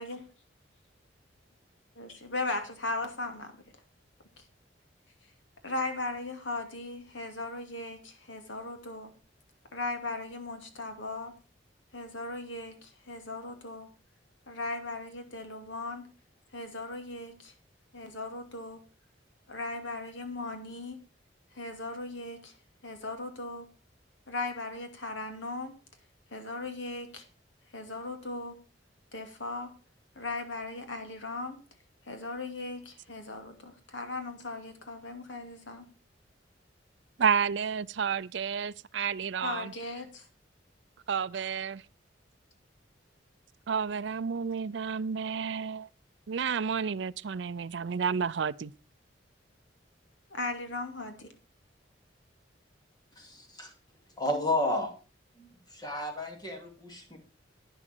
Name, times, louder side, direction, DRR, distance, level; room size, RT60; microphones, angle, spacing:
voice 1, 2.0-3.5 5.6-9.1 9.7-11.3 11.9-13.9 14.5-16.0 16.5-17.5 17.9-18.8 19.5-21.0 21.5-22.6 22.8-23.7 24.3-25.7 26.3-27.2 27.7-28.6 29.1-29.7 30.2-31.6 32.0-35.8 39.4-40.3 50.3-51.3, left 2 dB, 85° left, 2.5 m, -37 dB
voice 2, 37.2-39.7 41.1-41.8 43.7-45.9 46.3-48.7, right 6 dB, 70° right, 0.5 m, -31 dB
voice 3, 53.2-53.7 54.2-54.9 55.4-57.2, left 1 dB, 20° left, 2.8 m, -32 dB
11.0 x 9.9 x 4.5 m
head